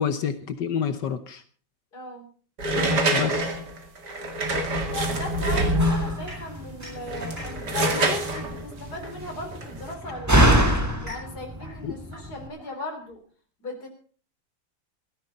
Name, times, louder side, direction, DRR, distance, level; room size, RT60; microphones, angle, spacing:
voice 1, 0.0-1.4 3.1-3.6 11.8-12.0, left 7 dB, 70° left, 10 dB, 1.6 m, -28 dB
voice 2, 1.9-2.3 4.9-10.5 11.0-13.2 13.6-13.9, left 2 dB, 55° left, 4 dB, 4.0 m, -37 dB
sound 1, 2.6-6.3 7.0-9.9, right 1 dB, 60° right, 2.9 m, -26 dB
Slam, 4.9-12.5, right 1 dB, 10° right, 1.4 m, -27 dB
sound 2, 6.3-8.9 9.9-13.3, left 1 dB, 30° right, 7.4 m, -46 dB
17.5 x 14.5 x 4.1 m, 0.43 s
omnidirectional pair, 2.1 m